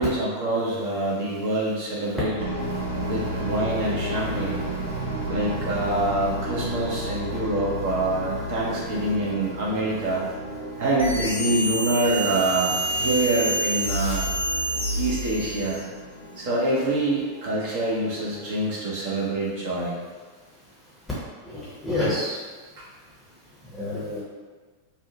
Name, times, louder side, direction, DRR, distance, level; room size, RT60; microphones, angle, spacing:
voice 1, 0.0-2.3 3.0-4.6 5.3-10.2 10.8-14.2 15.0-15.8 16.4-20.0 22.8-22.9, right 2 dB, 50° right, -5 dB, 0.6 m, -25 dB
sound 1, 2.4-19.0, equal, 90° right, 0.7 m, -33 dB
sound 2, 11.0-15.9, right 1 dB, 90° left, 0.6 m, -27 dB
voice 2, 21.4-22.4 23.7-24.2, left 1 dB, 5° left, -9 dB, 0.6 m, -29 dB
2.6 x 2.1 x 2.6 m, 1.4 s
figure-of-eight pair, 90°, 0 cm